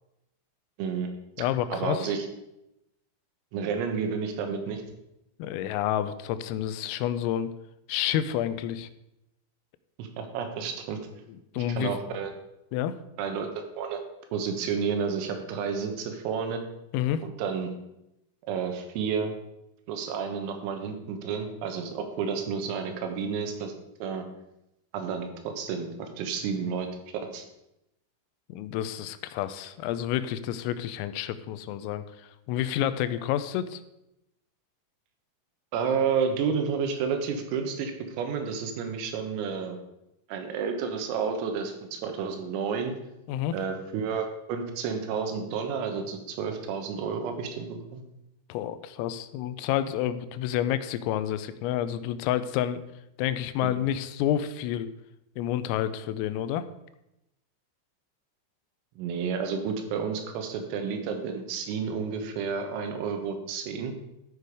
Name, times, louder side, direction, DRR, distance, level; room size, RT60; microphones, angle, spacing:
voice 1, 0.8-1.1 1.7-2.3 3.5-4.8 10.0-11.0 11.6-12.3 13.2-14.0 14.3-16.6 17.2-17.7 18.4-19.3 19.9-23.7 24.0-24.2 24.9-26.9 27.3-27.4 35.7-39.8 40.3-42.9 43.5-48.0 53.6-53.7 59.0-63.9, right 6 dB, 85° right, 5 dB, 4.0 m, -31 dB
voice 2, 1.4-2.1 5.4-7.5 7.9-8.9 11.5-11.9 12.7-13.0 16.9-17.2 28.5-32.0 32.5-33.8 43.3-43.5 48.5-52.8 53.2-54.9 55.4-56.7, left 11 dB, 90° left, 12 dB, 3.3 m, -29 dB
13.0 x 6.8 x 4.8 m, 0.87 s
omnidirectional pair, 5.9 m